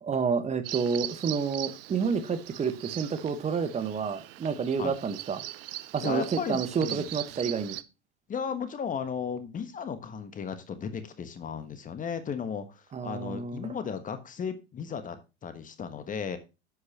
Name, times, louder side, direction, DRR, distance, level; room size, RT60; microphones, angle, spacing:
voice 1, 0.0-5.4 5.9-7.8 12.9-13.7, right 6 dB, 20° right, 1.2 m, -29 dB
Bird vocalization bird call bird song, 0.6-7.8, right 16 dB, 55° right, 0.8 m, -40 dB
voice 2, 6.0-7.1 8.3-16.4, left 6 dB, 25° left, 1.4 m, -35 dB
10.0 x 8.0 x 2.9 m
figure-of-eight pair, 85°, 34 cm